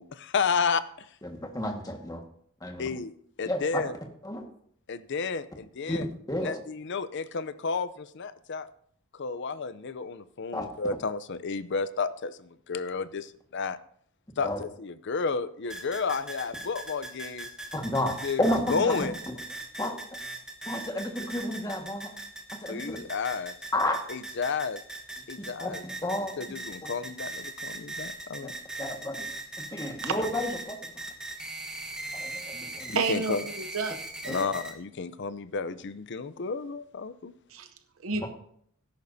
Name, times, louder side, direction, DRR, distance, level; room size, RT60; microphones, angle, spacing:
voice 1, 0.0-1.1 2.8-3.1 3.4-3.9 4.9-6.1 6.4-8.7 9.1-13.8 14.4-17.5 18.2-18.4 18.7-19.1 22.7-23.5 24.1-24.8 25.3-25.8 26.4-28.5 32.9-33.4 34.3-37.3, left 5 dB, 55° left, 14 dB, 0.6 m, -32 dB
voice 2, 1.2-2.2 2.6-2.9 3.4-3.8 4.2-4.4 5.9-6.0 6.3-6.6 10.5-10.7 14.4-14.6 17.7-19.3 19.8-20.2 20.6-22.1 22.5-23.0 23.7-24.0 25.4-26.4 26.8-26.9 28.4-28.5 28.8-29.3 29.6-30.9 32.1-33.0 34.3-34.4 38.1-38.3, left 1 dB, 15° left, 2 dB, 1.6 m, -31 dB
sound 1, 15.7-34.7, right 2 dB, 5° right, 1.3 m, -40 dB
voice 3, 32.9-34.0 34.2-34.4 37.5-37.7 38.0-38.3, right 4 dB, 70° right, 9 dB, 0.8 m, -30 dB
17.5 x 10.5 x 2.7 m, 0.65 s
head